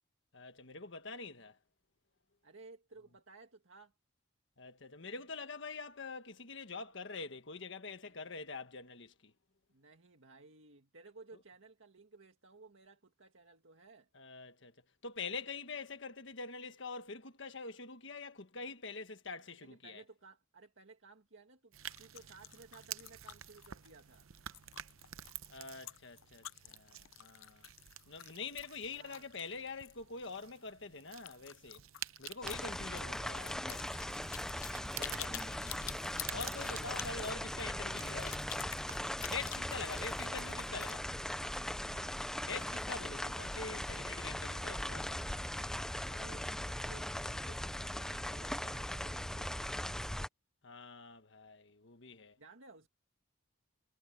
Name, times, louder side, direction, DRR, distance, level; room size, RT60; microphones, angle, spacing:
voice 1, 0.3-1.6 4.6-9.3 14.1-14.7 15.0-20.0 25.5-27.7 28.1-31.8 32.2-34.2 35.0-38.4 39.2-41.0 42.5-45.2 50.6-52.4, left 4 dB, 60° left, 1.5 m, -45 dB
voice 2, 2.4-3.9 8.0-8.3 9.7-14.1 19.5-24.3 28.9-29.2 35.0-35.8 36.9-37.2 39.9-40.7 41.9-42.2 46.1-49.9 52.4-52.9, right 3 dB, 70° right, 1.9 m, -58 dB
sound 1, 21.7-39.2, right 12 dB, 90° right, 0.7 m, -51 dB
sound 2, 21.8-30.0 30.3-30.4 30.7-30.8 31.1-41.0, left 14 dB, 80° left, 0.6 m, -49 dB
sound 3, 32.4-50.3, left 1 dB, 5° left, 0.3 m, -39 dB
head